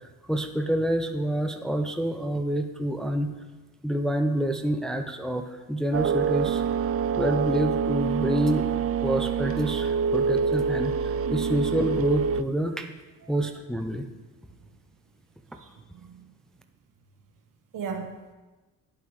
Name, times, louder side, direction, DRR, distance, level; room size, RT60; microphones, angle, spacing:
voice 1, 0.3-3.3 3.8-6.6 7.2-8.7 9.0-10.9 11.3-12.9 13.3-14.1, right 1 dB, ahead, 5 dB, 0.6 m, -27 dB
sound 1, 5.9-12.4, right 6 dB, 45° right, 0.4 m, -26 dB
voice 2, 15.5-16.3 17.7-18.3, right 5 dB, 65° right, 3 dB, 1.4 m, -38 dB
9.4 x 8.2 x 3.2 m, 1.2 s
cardioid pair, 80°, 34 cm